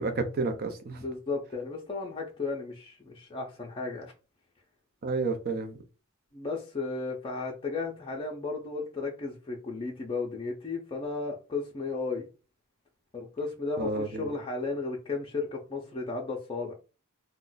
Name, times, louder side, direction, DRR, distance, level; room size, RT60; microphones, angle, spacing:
voice 1, 0.0-1.0 5.0-5.8 13.8-14.3, right 3 dB, 45° right, 0.5 m, -30 dB
voice 2, 0.9-4.1 6.3-12.3 13.1-16.7, left 3 dB, 25° left, 0.5 m, -34 dB
2.4 x 2.1 x 3.8 m
head